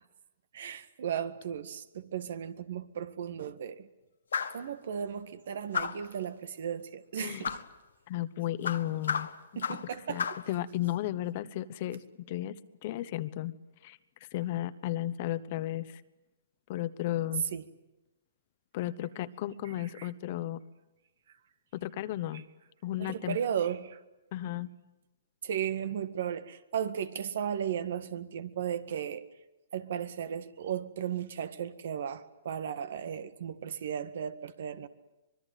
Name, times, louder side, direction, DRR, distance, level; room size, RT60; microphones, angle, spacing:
voice 1, 0.5-3.9 4.5-7.6 9.6-10.2 17.5-17.6 20.0-20.1 23.0-24.0 25.4-29.2 29.7-34.9, right 8 dB, 65° right, 1.8 m, -35 dB
sound 1, 4.3-4.6 5.7-6.1 7.4-7.7 8.6-9.9 10.2-10.5, left 6 dB, 90° left, 1.6 m, -33 dB
voice 2, 7.2-7.5 8.1-9.3 10.1-12.5 12.8-13.5 13.8-14.0 14.3-16.0 16.7-17.4 18.7-20.6 21.7-22.4 22.8-23.4 24.3-24.7, left 14 dB, 45° left, 1.1 m, -34 dB
25.0 x 22.0 x 9.2 m
hypercardioid pair, 140°, 0 cm